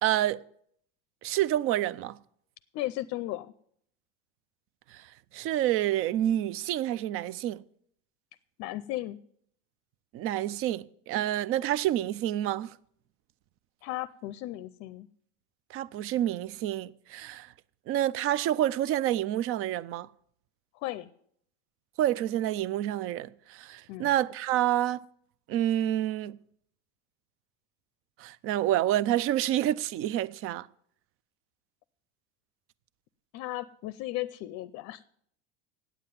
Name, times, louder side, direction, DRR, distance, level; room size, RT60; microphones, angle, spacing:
voice 1, 0.0-0.4 1.2-2.2 4.9-5.0 5.3-7.6 10.1-12.7 15.7-17.5 17.9-20.1 22.0-25.0 25.5-26.4 28.2-30.7, right 13 dB, 45° right, 0.5 m, -28 dB
voice 2, 2.7-3.5 8.6-9.2 13.8-15.1 20.7-21.1 23.9-24.1 33.3-35.0, left 16 dB, 50° left, 0.5 m, -35 dB
9.1 x 7.6 x 9.2 m
supercardioid pair, 125°, 30 cm